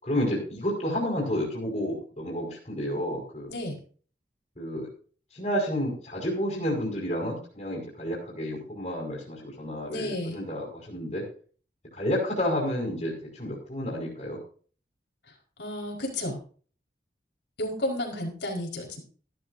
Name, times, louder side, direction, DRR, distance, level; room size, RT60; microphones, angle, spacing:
voice 1, 0.0-3.5 4.6-4.9 5.3-11.2 11.9-14.4, equal, 40° left, -4 dB, 4.9 m, -30 dB
voice 2, 9.9-10.4 15.6-16.4 17.6-19.0, left 1 dB, 80° left, 1 dB, 4.9 m, -32 dB
16.5 x 12.5 x 2.7 m, 0.43 s
head